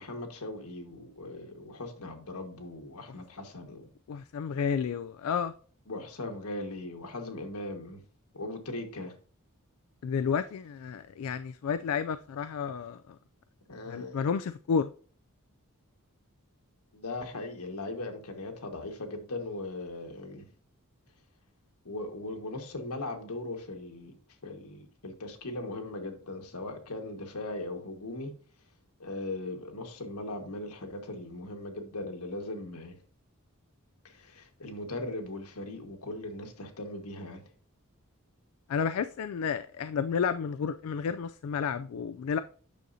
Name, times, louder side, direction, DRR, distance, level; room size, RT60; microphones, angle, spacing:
voice 1, 0.0-3.9 5.9-8.0 8.3-9.1 13.7-14.2 16.9-20.5 21.8-24.1 24.4-28.3 29.0-33.0 34.0-37.4, left 2 dB, 85° left, 1.5 m, -39 dB
voice 2, 4.1-5.5 10.0-13.2 13.9-14.9 38.7-42.4, left 6 dB, 70° left, 0.3 m, -31 dB
9.2 x 6.3 x 2.7 m
head